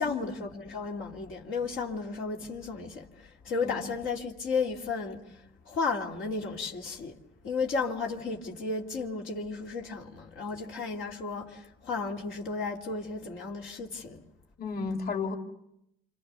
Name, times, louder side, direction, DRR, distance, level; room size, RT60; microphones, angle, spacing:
voice 1, 0.0-5.2 5.6-7.2 7.4-14.2, left 4 dB, 80° left, 2.8 m, -33 dB
voice 2, 14.6-15.3, left 4 dB, 50° left, 2.8 m, -33 dB
28.0 x 26.5 x 6.9 m
cardioid pair, 90°, 20 cm